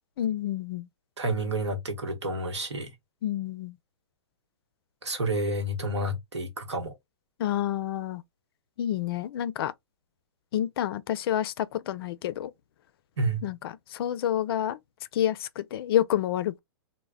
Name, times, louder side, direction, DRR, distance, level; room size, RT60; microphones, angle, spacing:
voice 1, 0.2-0.9 3.2-3.7 7.4-8.2 8.8-9.7 10.5-12.5 13.4-14.8 15.1-16.6, left 11 dB, 60° left, 0.4 m, -28 dB
voice 2, 1.2-2.9 5.0-6.9 13.2-13.5, right 1 dB, 90° right, 0.9 m, -30 dB
2.1 x 2.0 x 3.5 m
hypercardioid pair, 120°, 14 cm